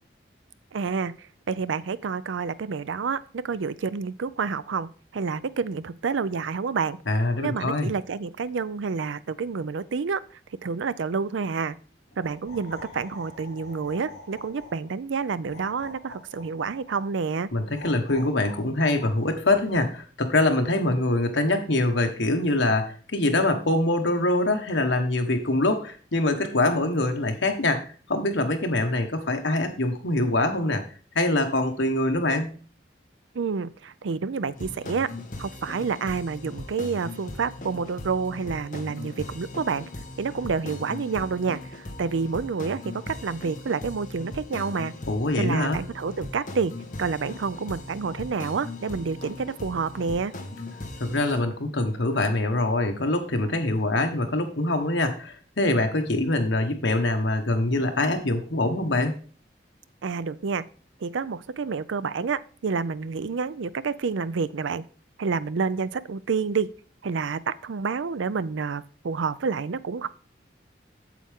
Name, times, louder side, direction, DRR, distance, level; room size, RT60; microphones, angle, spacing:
voice 1, 0.7-7.0 7.4-10.2 10.6-11.8 12.2-17.5 33.3-35.1 35.4-39.9 40.2-41.6 42.0-44.9 45.4-46.7 47.0-50.3 60.0-60.6 61.0-64.8 65.2-66.7 67.0-70.1, right 5 dB, 90° right, 17 dB, 0.5 m, -29 dB
voice 2, 7.1-7.9 17.5-27.8 28.1-30.8 31.1-32.5 45.1-45.8 51.0-59.2, left 2 dB, 80° left, 5 dB, 1.4 m, -24 dB
sound 1, 12.1-14.9 15.5-17.1 17.7-20.0, left 2 dB, 60° left, 3.6 m, -45 dB
sound 2, 34.6-51.4, left 2 dB, 45° left, 1.3 m, -39 dB
8.4 x 7.6 x 3.6 m, 0.40 s
head